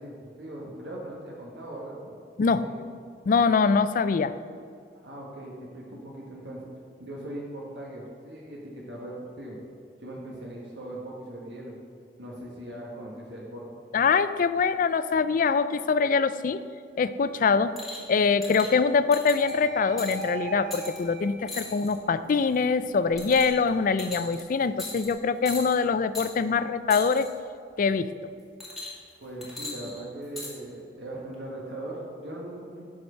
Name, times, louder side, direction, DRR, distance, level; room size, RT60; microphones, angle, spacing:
voice 1, 0.0-2.2 2.6-2.8 5.0-6.6 7.0-9.6 10.0-11.7 12.2-13.6 29.2-32.8, right 1 dB, 85° right, -4 dB, 1.7 m, -39 dB
voice 2, 2.4-2.7 3.3-4.3 13.9-16.6 17.0-17.8 18.1-27.3 27.8-28.1, left 5 dB, 50° left, 13 dB, 0.4 m, -24 dB
sound 1, 17.8-18.1 18.4-18.7 19.1-19.5 20.0-20.2 20.7-21.0 21.5-22.0 22.4-22.6 23.2-23.7 24.0-24.4 24.8-25.1 25.4-25.8 26.1-26.3 26.9-27.3 28.6-29.1 29.4-30.5 31.3-31.4, left 2 dB, ahead, 2.3 m, -38 dB
sound 2, 19.4-22.2 22.7-25.1, right 3 dB, 50° right, 0.8 m, -41 dB
11.5 x 4.8 x 6.4 m, 2.2 s
head